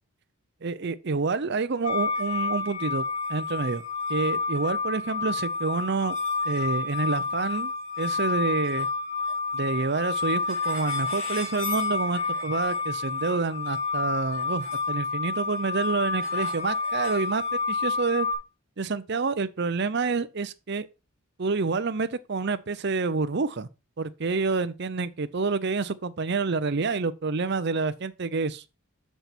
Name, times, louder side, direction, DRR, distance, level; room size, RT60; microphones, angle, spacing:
voice 1, 0.6-3.0 3.3-3.8 4.1-6.1 6.5-7.7 8.0-8.9 9.5-18.3 18.8-20.9 21.4-23.7 24.0-28.6, right 4 dB, 50° right, 0.6 m, -28 dB
sound 1, 1.8-18.3, left 4 dB, 60° left, 3.1 m, -29 dB
6.7 x 6.2 x 4.4 m
head